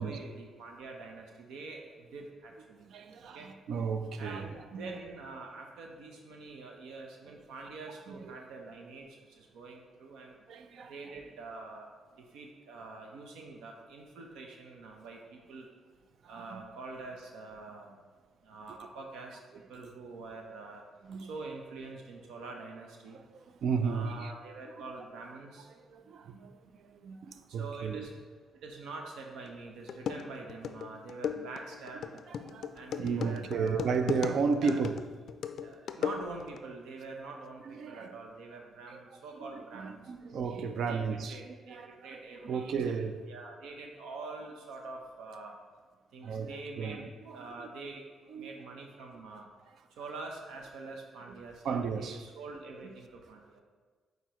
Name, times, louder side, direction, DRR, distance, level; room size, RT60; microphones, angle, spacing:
voice 1, 0.0-2.9 3.3-3.5 4.2-10.3 10.9-11.9 12.1-15.7 16.3-18.0 18.4-19.4 19.7-20.8 21.2-23.2 23.8-25.7 27.5-28.1 28.6-32.2 32.7-34.0 34.6-34.8 35.5-40.0 40.9-41.0 41.3-45.5 46.1-47.1 47.3-48.0 48.3-49.5 50.0-53.6, right 3 dB, 85° right, 0.8 m, -45 dB
voice 2, 2.9-4.9 8.1-8.3 10.5-10.9 16.2-16.6 18.7-18.9 21.0-21.3 23.1-24.3 25.9-28.1 32.3-35.0 37.6-38.2 38.9-39.0 39.4-43.2 46.2-47.7 48.3-48.5 51.3-51.4 51.6-52.2 52.8-52.9, right 5 dB, 65° right, 0.4 m, -34 dB
sound 1, 29.5-29.6 29.9-36.6, left 7 dB, 65° left, 0.3 m, -37 dB
8.9 x 4.0 x 3.1 m
cardioid pair, 90°, 0 cm